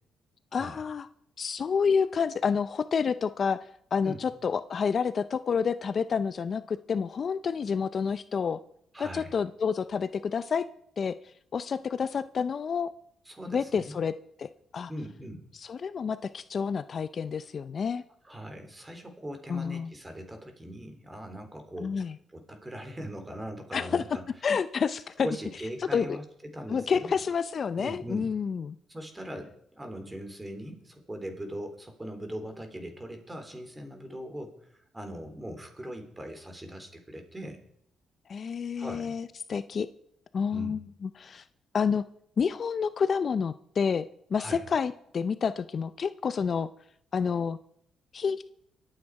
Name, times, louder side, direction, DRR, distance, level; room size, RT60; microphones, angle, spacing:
voice 1, 0.5-1.1 1.4-8.6 9.0-10.7 11.0-12.9 13.5-14.1 14.4-14.9 15.5-18.0 19.5-19.9 21.8-22.2 23.7-24.0 24.4-25.3 25.9-26.2 26.7-28.8 38.3-39.9 40.3-41.4 41.7-42.0 42.4-46.7 47.1-47.6 48.1-48.4, left 6 dB, 45° left, 14 dB, 0.5 m, -29 dB
voice 2, 8.9-9.3 13.3-14.0 14.9-15.4 18.2-22.0 22.3-24.2 25.2-27.1 27.8-28.3 28.9-37.6 38.8-39.1 40.5-40.8 44.4-44.6, equal, 15° right, 6 dB, 3.4 m, -40 dB
23.5 x 8.8 x 4.7 m, 0.70 s
cardioid pair, 90°, 0 cm